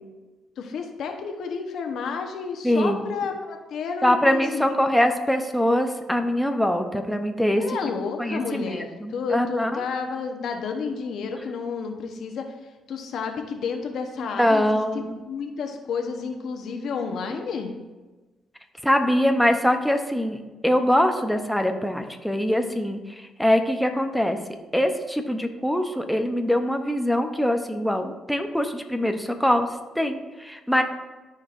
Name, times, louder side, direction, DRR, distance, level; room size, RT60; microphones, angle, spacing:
voice 1, 0.6-4.8 7.5-12.5 12.9-17.7, left 5 dB, 70° left, 4 dB, 0.9 m, -31 dB
voice 2, 2.6-3.0 4.0-7.6 8.2-9.8 14.4-15.1 18.8-24.4 24.7-29.7 30.0-30.8, equal, ahead, 5 dB, 0.6 m, -23 dB
13.0 x 4.5 x 2.5 m, 1.2 s
cardioid pair, 90°, 0 cm